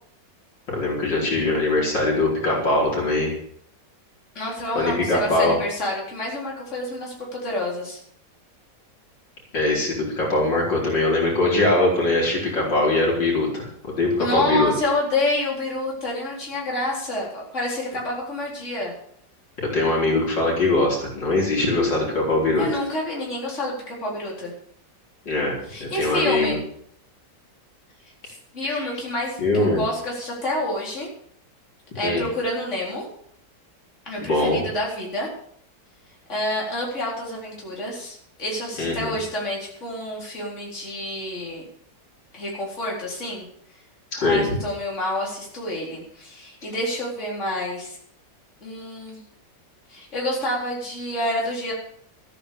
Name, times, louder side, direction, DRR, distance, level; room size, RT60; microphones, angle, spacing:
voice 1, 0.7-3.3 4.8-5.6 9.5-14.7 19.6-22.7 25.3-26.6 28.7-28.9 29.4-29.8 32.0-32.2 34.2-34.6 38.8-39.2 44.1-44.4, left 2 dB, 90° left, -3 dB, 5.5 m, -22 dB
voice 2, 4.3-8.0 14.2-18.9 22.6-24.5 25.7-26.6 28.2-31.1 31.9-33.0 34.1-35.3 36.3-41.6 42.3-43.5 44.2-48.0 48.6-49.2 49.9-51.7, left 1 dB, 40° left, -4 dB, 4.5 m, -28 dB
14.0 x 10.0 x 7.1 m, 0.64 s
omnidirectional pair, 1.9 m